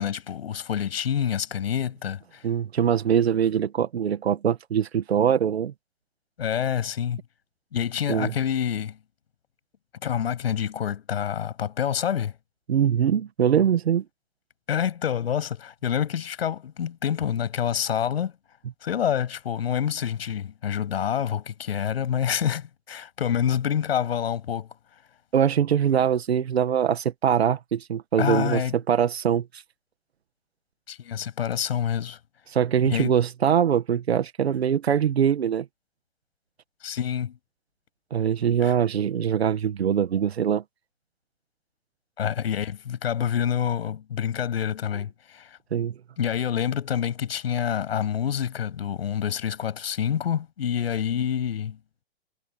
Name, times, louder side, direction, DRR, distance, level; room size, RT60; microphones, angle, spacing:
voice 1, 0.0-2.4 6.4-7.2 7.7-9.0 10.0-12.3 14.7-18.3 18.8-24.7 28.2-28.7 30.9-32.2 32.9-33.1 36.8-37.3 38.6-38.7 42.2-45.6 46.2-51.8, left 9 dB, 75° left, 7.6 m, -27 dB
voice 2, 2.4-5.7 8.1-8.3 12.7-14.0 25.3-28.6 28.9-29.6 32.5-35.7 38.1-40.6 45.7-45.9, right 8 dB, 85° right, 1.9 m, -23 dB
hypercardioid pair, 130°, 31 cm